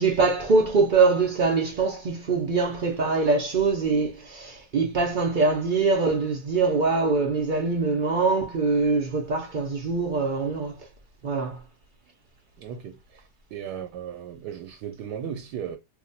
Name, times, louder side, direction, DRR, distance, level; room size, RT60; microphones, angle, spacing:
voice 1, 0.0-10.8 11.2-11.6, right 4 dB, 65° right, 0.4 m, -23 dB
voice 2, 12.6-15.8, right 8 dB, 85° right, 1.2 m, -36 dB
2.9 x 2.2 x 3.9 m
omnidirectional pair, 1.8 m